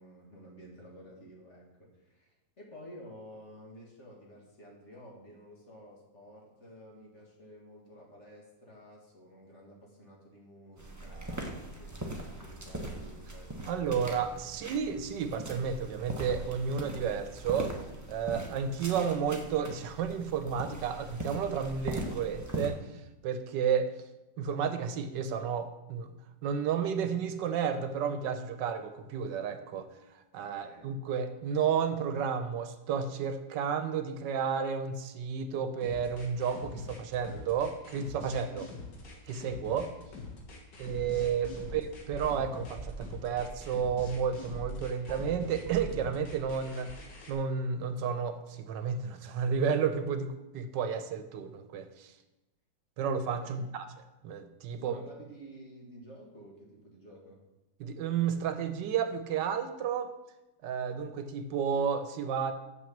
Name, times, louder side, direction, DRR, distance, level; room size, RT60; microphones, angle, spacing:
voice 1, 0.0-11.9 12.2-13.7 30.4-30.9 38.5-38.7 41.4-41.6 53.4-53.7 54.8-57.4, equal, 40° left, -2 dB, 2.1 m, -52 dB
sound 1, 10.8-22.7, right 1 dB, 10° right, 0.9 m, -41 dB
voice 2, 13.7-17.7 18.1-22.9 23.2-23.9 24.4-26.1 26.4-29.9 30.3-38.6 39.3-39.9 40.8-46.9 47.3-52.1 53.0-53.8 54.2-55.0 57.8-60.1 60.6-62.5, right 7 dB, 80° right, 9 dB, 1.4 m, -32 dB
sound 2, 35.8-47.3, left 4 dB, 75° left, 2.2 m, -44 dB
sound 3, 40.8-42.4 42.8-44.8 45.1-46.6 46.9-47.0, right 4 dB, 50° right, 0.5 m, -44 dB
6.5 x 6.2 x 7.2 m, 0.97 s
omnidirectional pair, 1.9 m